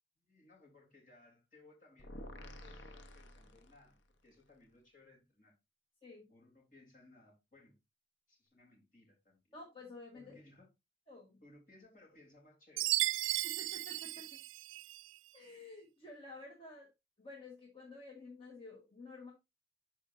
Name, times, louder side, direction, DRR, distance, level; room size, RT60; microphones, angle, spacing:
voice 1, 0.2-5.5 6.3-7.8 8.3-9.5 10.1-10.7 11.4-12.9 14.2-14.4, left 2 dB, 45° left, 3.6 m, -62 dB
sound 1, 2.0-4.1, left 1 dB, 75° left, 1.0 m, -51 dB
voice 2, 9.5-10.4 11.1-11.4 13.4-14.3 15.3-16.9 17.2-19.3, left 2 dB, 30° left, 1.5 m, -51 dB
Chime, 12.8-15.1, right 18 dB, 90° right, 0.3 m, -35 dB
12.5 x 4.6 x 2.6 m
head